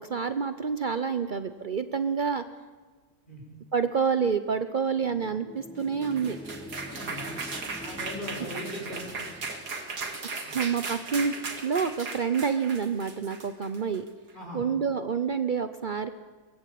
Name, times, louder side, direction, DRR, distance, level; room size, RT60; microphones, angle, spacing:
voice 1, 0.0-2.4 3.7-6.4 10.2-14.0 14.5-16.1, right 6 dB, 75° right, 10 dB, 0.4 m, -28 dB
sound 1, 5.0-9.9, left 2 dB, 5° left, 1.1 m, -45 dB
sound 2, 5.8-14.1, right 3 dB, 60° right, 2.9 m, -37 dB
voice 2, 6.9-7.2 7.8-9.1 10.4-10.6 14.3-14.6, left 1 dB, 25° left, -1 dB, 6.3 m, -39 dB
23.0 x 19.5 x 8.4 m, 1.4 s
omnidirectional pair, 2.0 m